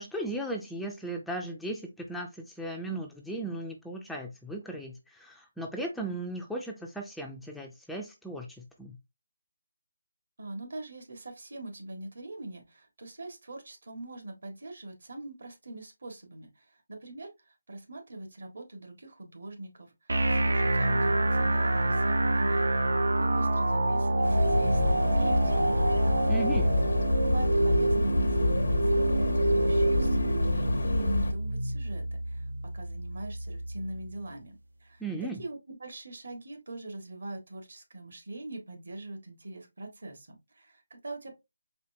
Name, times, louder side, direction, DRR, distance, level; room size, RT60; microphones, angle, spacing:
voice 1, 0.0-9.0 26.3-26.7 35.0-35.4, right 1 dB, ahead, 0.3 m, -37 dB
voice 2, 10.4-19.9 20.3-22.7 23.1-26.3 27.2-32.4 32.7-41.3, right 2 dB, 65° right, 1.5 m, -43 dB
sound 1, 20.1-34.1, right 2 dB, 85° right, 0.6 m, -27 dB
sound 2, 24.2-31.3, left 2 dB, 90° left, 0.8 m, -28 dB
4.3 x 3.3 x 2.6 m
figure-of-eight pair, 170°, 0 cm